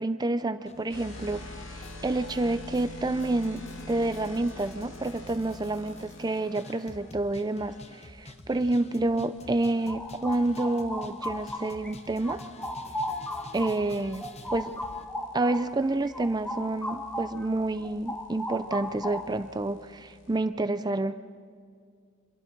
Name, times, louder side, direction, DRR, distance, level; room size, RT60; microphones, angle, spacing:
voice 1, 0.0-1.4 1.7-3.6 3.9-12.4 13.5-14.8 15.3-21.1, right 2 dB, 20° right, 11 dB, 0.5 m, -29 dB
sound 1, 0.7-15.1, left 2 dB, 30° left, 1.0 m, -49 dB
sound 2, 0.9-6.9 9.4-20.4, left 1 dB, 70° left, 2.7 m, -47 dB
sound 3, 9.4-11.9 12.2-17.5 17.8-19.5, left 1 dB, 5° left, 1.3 m, -36 dB
27.0 x 22.5 x 4.6 m, 2.1 s
head